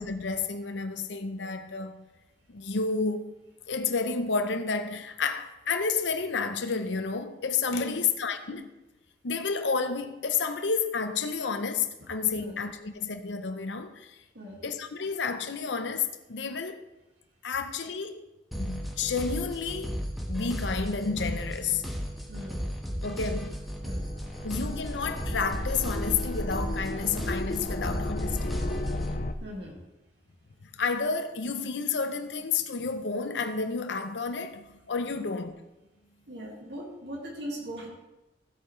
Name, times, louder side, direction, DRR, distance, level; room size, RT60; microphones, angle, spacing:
voice 1, 0.0-2.0 2.5-3.4 3.7-8.7 9.2-14.2 14.6-16.9 17.4-18.3 18.5-20.0 20.3-21.8 23.0-23.6 24.4-28.7 30.6-35.5, left 5 dB, 90° left, 0.7 m, -30 dB
voice 2, 7.7-8.1 12.4-12.6 14.3-14.6 22.3-22.6 23.8-24.0 29.4-29.8 35.1-35.2 36.3-37.9, equal, 70° right, 2.1 m, -40 dB
sound 1, 18.5-29.2, equal, ahead, 1.4 m, -35 dB
sound 2, 23.6-29.3, left 2 dB, 45° left, 0.5 m, -34 dB
15.5 x 8.5 x 3.2 m
head